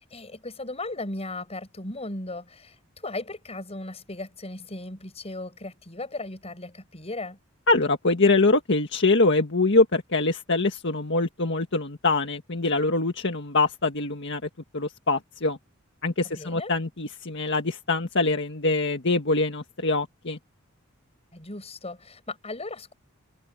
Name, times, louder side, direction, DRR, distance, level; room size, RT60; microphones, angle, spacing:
voice 1, 0.1-2.7 3.0-7.4 16.3-16.7 21.3-22.9, left 2 dB, 30° left, 7.3 m, -36 dB
voice 2, 7.7-15.6 16.0-20.4, left 3 dB, 60° left, 1.7 m, -24 dB
head